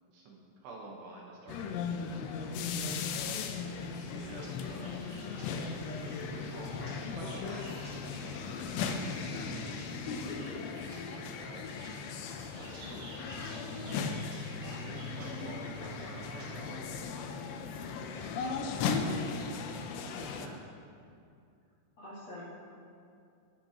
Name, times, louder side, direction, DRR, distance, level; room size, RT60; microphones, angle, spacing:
voice 1, 0.1-3.5 4.1-5.0 6.0-9.5 9.9-10.5 11.1-12.1 12.5-14.2 14.6-17.0 17.3-17.4 17.9-20.6, right 2 dB, 70° right, -2 dB, 3.0 m, -50 dB
sound 1, 1.5-20.5, left 5 dB, 80° left, 2.5 m, -37 dB
sound 2, 3.6-16.5, right 2 dB, 50° right, 3.6 m, -54 dB
voice 2, 10.1-10.6 22.0-22.5, left 1 dB, 50° left, -9 dB, 2.2 m, -42 dB
19.5 x 10.5 x 3.0 m, 2.4 s
omnidirectional pair, 5.7 m